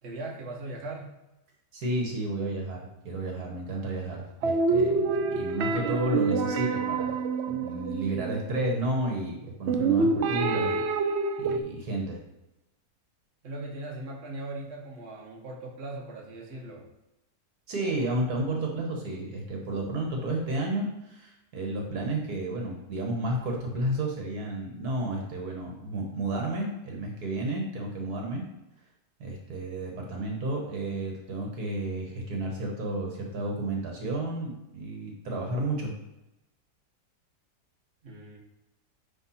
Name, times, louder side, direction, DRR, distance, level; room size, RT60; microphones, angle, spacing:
voice 1, 0.0-1.1 13.4-16.8 38.0-38.4, right 2 dB, 40° right, -2 dB, 1.5 m, -39 dB
voice 2, 1.7-7.1 7.5-10.8 11.4-12.2 17.7-28.4 29.2-35.9, right 1 dB, 65° right, 1 dB, 1.8 m, -32 dB
sound 1, 4.4-8.6 9.7-11.6, right 4 dB, 80° right, 0.6 m, -27 dB
9.8 x 3.5 x 4.2 m, 0.95 s
omnidirectional pair, 1.8 m